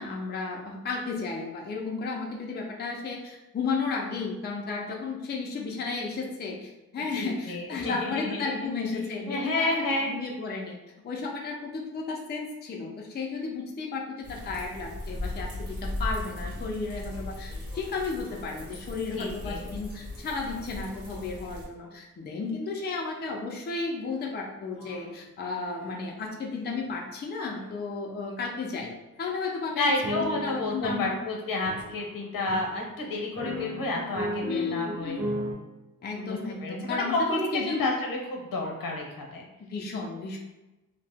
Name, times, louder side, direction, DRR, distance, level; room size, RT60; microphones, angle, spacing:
voice 1, 0.0-10.8 11.0-28.9 29.2-29.9 30.4-31.1 34.4-35.2 36.0-37.9 39.7-40.4, left 4 dB, 30° left, -1 dB, 0.4 m, -33 dB
voice 2, 7.1-8.6 9.3-10.2 19.1-19.6 29.8-35.2 36.0-39.4, left 2 dB, 80° left, 1 dB, 0.8 m, -30 dB
sound 1, 14.2-21.6, left 1 dB, 65° right, 1.4 m, -37 dB
sound 2, 17.0-17.1 17.5-21.9 23.2-23.4 24.0-24.2 24.7-25.1 25.7-26.1 26.7-27.0 27.5-27.7 28.4-28.5 29.2-29.3 30.0-35.5, equal, 40° right, 1.3 m, -38 dB
2.7 x 2.1 x 3.3 m, 1.0 s
wide cardioid pair, 150°, 34 cm